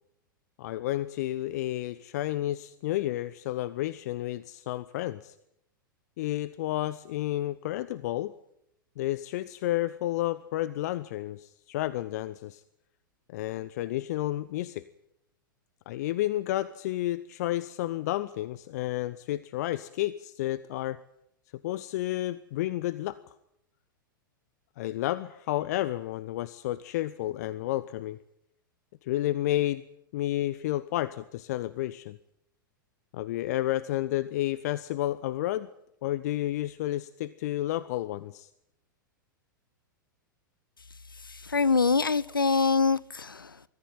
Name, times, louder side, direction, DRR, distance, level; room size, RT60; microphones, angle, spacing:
voice 1, 0.6-5.3 6.2-8.3 9.0-12.6 13.3-14.9 15.9-21.0 21.6-23.2 24.8-28.2 29.0-29.8 30.1-32.2 33.1-35.7 36.0-38.5, left 15 dB, 50° left, 0.7 m, -31 dB
voice 2, 41.1-43.6, left 4 dB, 85° left, 0.8 m, -25 dB
22.5 x 14.5 x 9.1 m
figure-of-eight pair, 100°, 11 cm